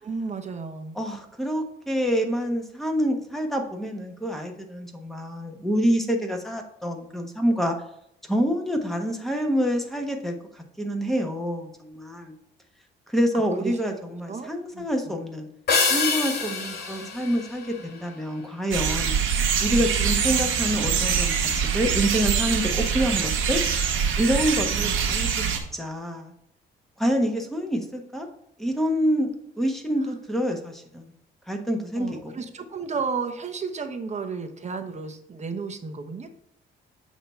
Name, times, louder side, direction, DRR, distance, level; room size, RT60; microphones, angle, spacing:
voice 1, 0.0-1.0 13.3-13.8 14.3-14.5 14.7-15.1 24.7-24.9 30.1-30.2 31.9-36.3, right 5 dB, 35° right, 6 dB, 1.0 m, -33 dB
voice 2, 0.9-7.7 8.2-12.3 13.1-15.5 15.9-19.2 19.6-23.6 24.2-25.4 25.7-26.3 27.0-28.3 28.6-29.3 29.6-31.1 31.5-32.3, equal, ahead, 3 dB, 1.3 m, -27 dB
sound 1, 15.7-18.3, left 4 dB, 55° left, 2.0 m, -26 dB
sound 2, 18.7-25.6, right 7 dB, 80° right, 1.2 m, -24 dB
7.8 x 3.0 x 5.6 m, 0.76 s
cardioid pair, 90°, 20 cm